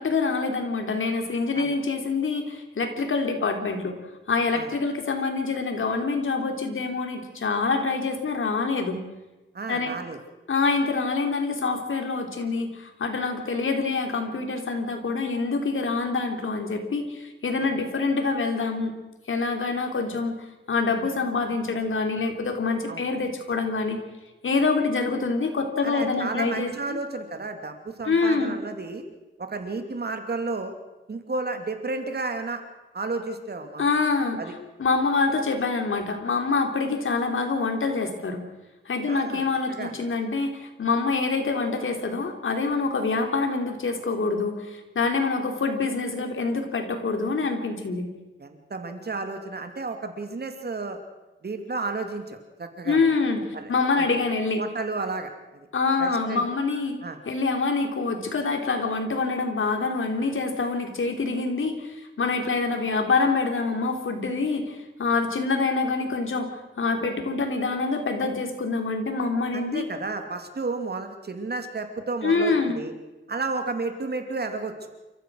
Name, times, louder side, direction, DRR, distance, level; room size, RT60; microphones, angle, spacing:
voice 1, 0.0-4.0 4.3-9.0 9.7-9.9 10.5-18.9 19.3-20.3 20.7-24.0 24.4-27.0 28.0-28.5 33.8-34.4 34.8-38.4 38.8-48.0 52.8-54.6 55.7-57.0 57.2-66.5 66.8-69.9 72.2-72.8, left 4 dB, 70° left, 4 dB, 3.4 m, -26 dB
voice 2, 9.5-10.2 17.6-17.7 22.9-23.0 25.8-29.0 29.4-30.7 31.1-32.6 32.9-33.8 34.4-34.5 39.1-39.4 39.7-39.9 48.4-51.0 51.4-53.1 53.5-54.2 54.6-55.7 56.0-56.4 57.0-57.2 69.5-72.9 73.3-74.9, right 3 dB, 50° right, 6 dB, 2.6 m, -32 dB
29.5 x 14.5 x 6.3 m, 1.1 s
wide cardioid pair, 90°, 21 cm